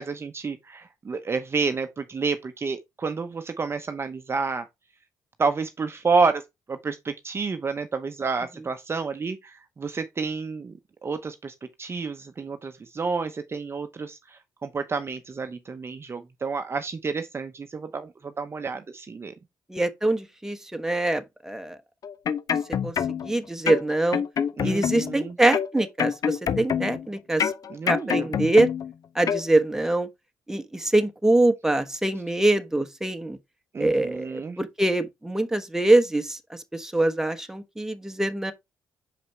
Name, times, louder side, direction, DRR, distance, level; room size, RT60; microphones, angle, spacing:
voice 1, 0.0-4.7 5.4-6.4 6.7-19.3 24.6-25.3 27.7-28.3 33.7-34.6, right 4 dB, 35° right, 0.8 m, -29 dB
voice 2, 19.7-21.8 22.8-22.9 23.2-24.2 24.6-27.5 27.9-28.7 29.1-30.1 30.5-33.4 33.8-38.5, right 2 dB, 5° right, 1.1 m, -24 dB
sound 1, 22.0-23.3 23.7-25.2 25.5-27.1 27.4-28.9 29.3-29.5, left 8 dB, 55° left, 0.6 m, -26 dB
6.0 x 5.0 x 3.3 m
supercardioid pair, 70°, 7 cm